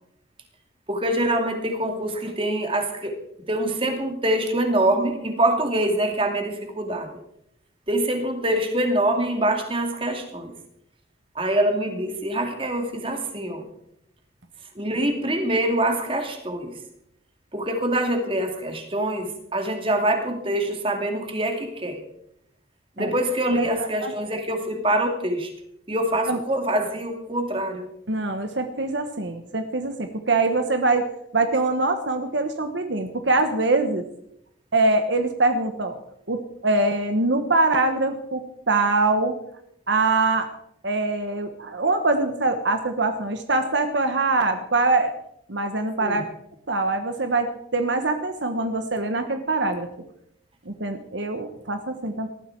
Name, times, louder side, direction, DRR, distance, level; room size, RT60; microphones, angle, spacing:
voice 1, 0.9-3.2 3.5-7.1 7.9-10.5 11.3-13.7 14.8-16.8 17.5-22.0 23.0-25.5 25.9-27.9 46.0-46.2, right 1 dB, 25° right, 4 dB, 2.6 m, -25 dB
voice 2, 23.5-24.1 26.3-26.4 28.1-34.0 34.7-36.0 36.3-39.4 39.9-40.5 40.8-45.1 45.5-46.2 46.7-49.9 50.7-52.3, right 3 dB, 65° right, 7 dB, 1.3 m, -23 dB
19.5 x 14.0 x 4.7 m, 0.76 s
head